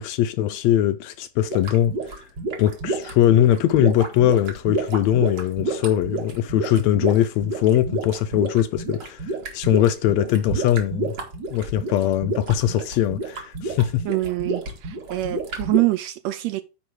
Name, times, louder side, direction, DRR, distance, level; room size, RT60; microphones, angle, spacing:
voice 1, 0.0-1.9 2.6-11.1 11.5-14.1, left 12 dB, 80° left, 1.7 m, -21 dB
sound 1, 1.5-15.8, right 2 dB, 40° right, 2.0 m, -30 dB
voice 2, 14.0-16.6, right 18 dB, 80° right, 1.6 m, -25 dB
9.4 x 4.0 x 6.2 m
omnidirectional pair, 3.5 m